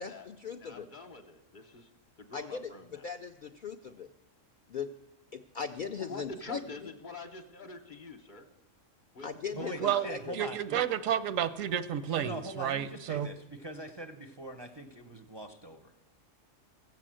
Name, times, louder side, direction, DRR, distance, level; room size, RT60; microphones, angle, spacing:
voice 1, 0.0-0.9 2.3-4.1 4.7-4.9 5.3-6.9 9.2-10.5, left 6 dB, 65° left, 0.5 m, -39 dB
voice 2, 0.6-1.9 2.2-3.0 6.0-8.5 9.1-9.3 9.6-10.1, left 3 dB, 40° left, 0.9 m, -45 dB
voice 3, 9.6-10.8 12.1-15.9, right 1 dB, 30° right, 0.5 m, -42 dB
voice 4, 10.3-13.3, right 9 dB, 85° right, 1.1 m, -31 dB
15.0 x 7.7 x 7.5 m
omnidirectional pair, 1.3 m